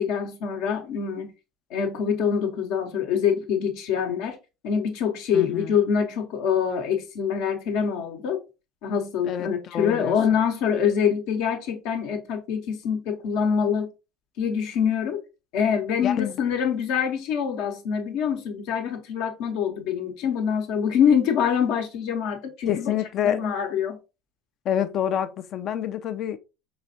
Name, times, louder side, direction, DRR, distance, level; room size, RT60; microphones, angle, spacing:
voice 1, 0.0-1.3 1.7-4.4 4.6-8.4 8.8-13.9 14.4-15.2 15.5-22.9 23.2-24.0, left 7 dB, 70° left, 0.9 m, -25 dB
voice 2, 5.3-5.8 9.2-10.4 16.0-16.4 22.7-23.4 24.6-26.4, left 10 dB, 50° left, 0.5 m, -27 dB
4.8 x 3.3 x 2.7 m
hypercardioid pair, 70°, 0 cm